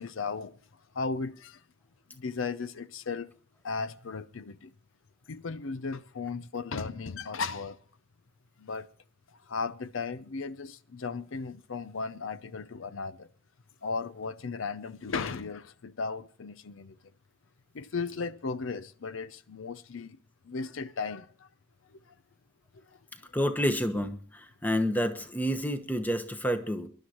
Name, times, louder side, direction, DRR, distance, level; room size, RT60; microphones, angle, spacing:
voice 1, 0.0-1.6 2.1-3.3 3.6-4.7 5.3-7.8 8.6-8.9 9.3-13.3 13.8-17.0 17.7-20.2 20.4-21.5 21.8-22.2 22.7-23.0 23.3-23.4, left 4 dB, 70° left, 0.6 m, -36 dB
voice 2, 23.3-26.9, equal, 10° left, 1.1 m, -29 dB
25.0 x 11.5 x 3.0 m
head